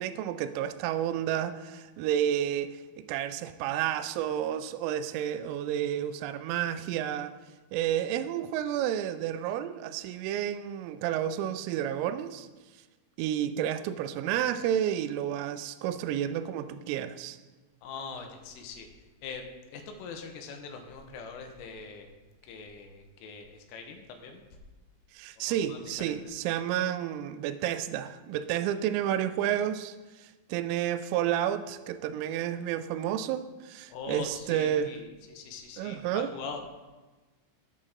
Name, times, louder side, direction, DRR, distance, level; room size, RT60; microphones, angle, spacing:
voice 1, 0.0-7.3 7.7-12.5 13.2-17.4 25.1-35.0 35.8-36.3, right 10 dB, 85° right, 3.0 m, -31 dB
voice 2, 17.8-18.9 19.2-19.4 19.7-22.2 22.4-24.4 25.4-26.2 33.9-36.6, left 5 dB, 85° left, 3.5 m, -42 dB
16.0 x 6.5 x 3.7 m
omnidirectional pair, 5.9 m